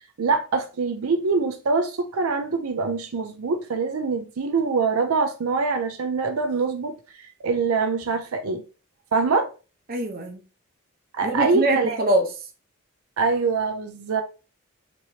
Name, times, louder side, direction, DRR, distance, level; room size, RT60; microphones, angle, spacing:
voice 1, 0.2-8.6 9.1-9.5 11.1-12.0 13.2-14.2, right 4 dB, 80° right, 0.5 m, -24 dB
voice 2, 9.9-10.4 11.2-12.3, right 1 dB, 45° right, 0.7 m, -23 dB
4.5 x 2.9 x 2.7 m
head